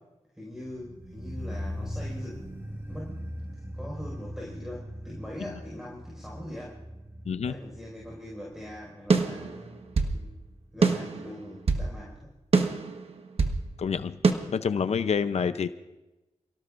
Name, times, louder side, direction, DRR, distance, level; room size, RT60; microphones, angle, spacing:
voice 1, 0.3-2.5 2.9-3.2 3.7-6.8 7.5-10.3 10.7-12.3, left 1 dB, 5° right, -3 dB, 5.3 m, -42 dB
sound 1, 0.5-11.6 11.8-11.9, equal, 20° right, 1.8 m, -40 dB
voice 2, 7.3-7.6 13.8-14.2 14.5-15.7, left 6 dB, 70° left, 11 dB, 0.7 m, -27 dB
sound 2, 9.1-10.2 10.8-11.9 12.5-13.6 14.2-14.3, right 4 dB, 55° right, 1.4 m, -24 dB
29.0 x 17.5 x 2.6 m, 1.0 s
wide cardioid pair, 80°, 12 cm